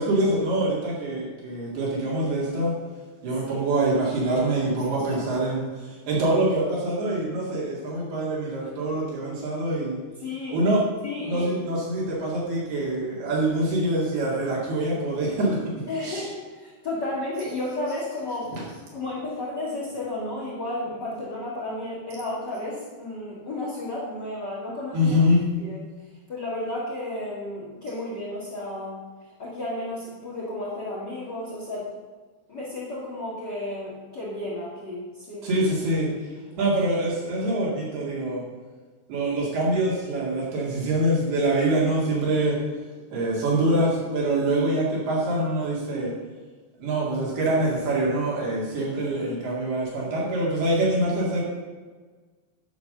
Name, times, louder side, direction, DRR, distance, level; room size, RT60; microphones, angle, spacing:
voice 1, 0.0-2.7 3.2-10.0 10.5-10.8 11.3-15.6 16.0-16.3 18.5-18.6 24.9-25.4 35.4-36.3 36.6-38.4 39.1-42.6 43.1-46.1 46.8-51.4, right 1 dB, 60° right, -5 dB, 4.0 m, -25 dB
voice 2, 10.2-10.6 11.0-11.5 15.9-16.3 16.6-18.5 18.9-25.1 25.6-25.8 26.3-29.0 29.4-31.9 32.5-35.5, left 1 dB, 50° left, -7 dB, 1.2 m, -32 dB
11.5 x 5.9 x 6.6 m, 1.4 s
omnidirectional pair, 5.5 m